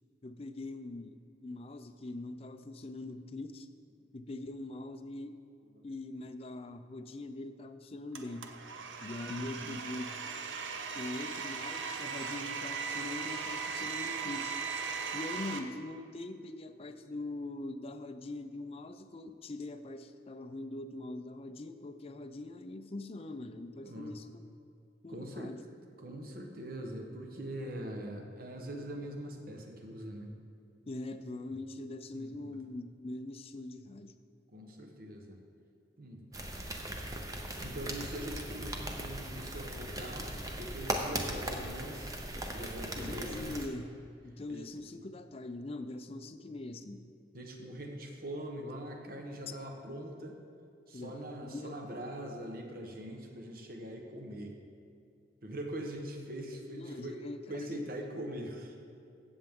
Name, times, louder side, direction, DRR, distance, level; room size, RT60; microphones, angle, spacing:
voice 1, 0.2-3.7 4.1-5.4 5.8-8.5 9.0-10.1 10.9-14.6 15.1-24.4 25.0-25.6 30.9-34.1 43.0-43.9 44.2-47.1 50.9-51.8 56.7-57.9, left 2 dB, 30° left, 9 dB, 0.4 m, -42 dB
Domestic sounds home sounds, 8.1-15.6, right 5 dB, 85° right, 0.7 m, -38 dB
voice 2, 9.3-9.8 23.8-24.1 25.1-25.5 26.0-30.3 32.1-32.6 34.5-35.4 36.0-36.2 37.6-42.2 42.5-43.4 44.5-44.6 47.3-50.4 50.9-54.6 55.4-57.2 57.5-58.8, right 1 dB, 50° right, 3 dB, 1.1 m, -42 dB
sound 1, 36.3-43.7, right 1 dB, 20° right, 0.7 m, -38 dB
15.0 x 7.1 x 3.7 m, 2.4 s
head